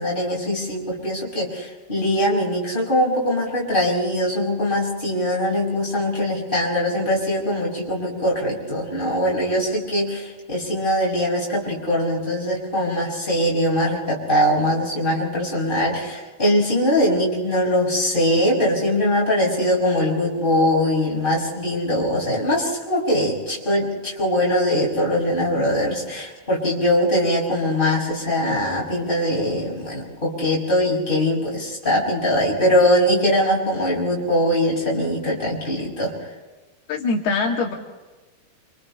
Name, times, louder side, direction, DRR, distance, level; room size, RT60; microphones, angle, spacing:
voice 1, 0.0-36.1, equal, 10° left, -4 dB, 6.5 m, -22 dB
voice 2, 36.9-37.8, left 4 dB, 75° left, 0 dB, 4.1 m, -22 dB
29.5 x 27.5 x 3.4 m, 1.2 s
omnidirectional pair, 4.6 m